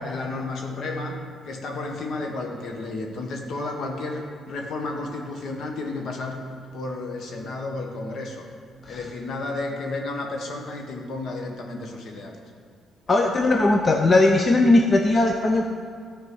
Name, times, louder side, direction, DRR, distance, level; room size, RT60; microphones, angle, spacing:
voice 1, 0.0-6.4 6.7-8.5 8.9-12.4, left 2 dB, 65° left, 2 dB, 1.5 m, -32 dB
voice 2, 13.1-15.6, left 2 dB, 35° left, 3 dB, 0.7 m, -18 dB
13.0 x 4.4 x 6.2 m, 2.1 s
cardioid pair, 90°, 0 cm